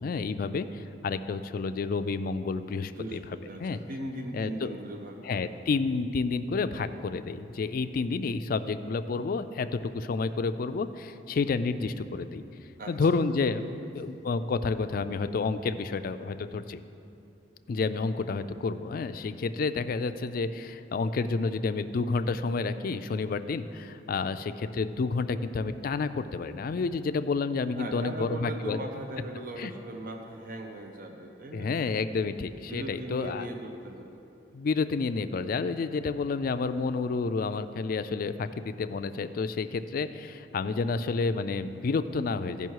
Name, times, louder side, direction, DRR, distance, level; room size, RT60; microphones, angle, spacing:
voice 1, 0.0-3.2 3.6-3.8 4.3-4.7 5.2-12.4 12.9-13.6 13.9-16.8 17.7-28.8 29.6-29.7 31.5-33.5 34.5-42.7, left 4 dB, 50° left, 11 dB, 0.4 m, -30 dB
voice 2, 2.9-5.5 12.8-12.9 13.6-13.9 27.7-31.8 32.6-34.2, right 1 dB, 50° right, 3 dB, 0.6 m, -39 dB
14.0 x 5.5 x 4.7 m, 2.7 s
head